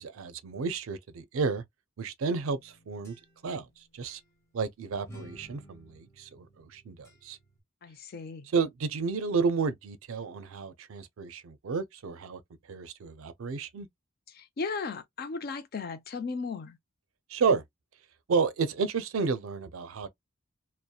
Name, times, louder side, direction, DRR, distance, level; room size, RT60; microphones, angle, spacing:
voice 1, 0.0-1.6 2.0-3.2 3.4-3.7 3.9-4.2 4.5-7.4 8.5-12.4 12.7-13.9 17.3-17.6 18.3-20.1, right 5 dB, 75° right, 0.4 m, -31 dB
sound 1, 2.5-3.7 4.0-4.2 5.1-7.6, equal, 15° left, 0.8 m, -53 dB
voice 2, 7.8-8.5 14.3-16.8, left 4 dB, 45° left, 0.4 m, -36 dB
2.7 x 2.0 x 2.2 m
head